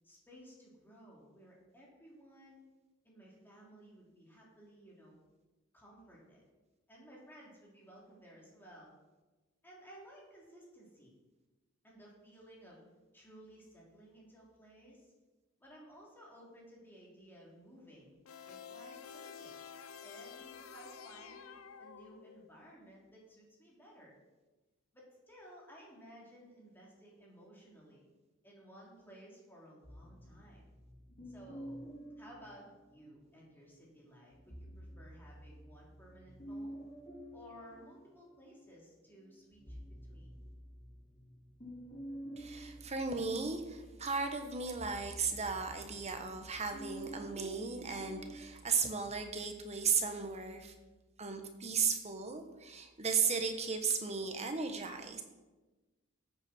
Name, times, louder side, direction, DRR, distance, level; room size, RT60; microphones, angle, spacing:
voice 1, 0.0-2.6 3.0-5.2 5.7-6.4 6.9-8.9 9.6-11.1 11.8-12.8 13.1-15.1 15.6-24.2 24.9-28.1 28.4-30.7 31.3-31.8 32.2-36.8 37.3-39.8 40.0-40.3, equal, 10° left, -4 dB, 3.3 m, -57 dB
sound 1, 18.3-22.6, left 7 dB, 85° left, 0.6 m, -50 dB
sound 2, 29.8-33.3 34.3-38.7 39.2-48.4, equal, 30° left, 3.1 m, -50 dB
voice 2, 42.4-50.7 51.2-55.2, right 5 dB, 30° right, 6 dB, 1.2 m, -35 dB
14.0 x 8.4 x 4.4 m, 1.2 s
head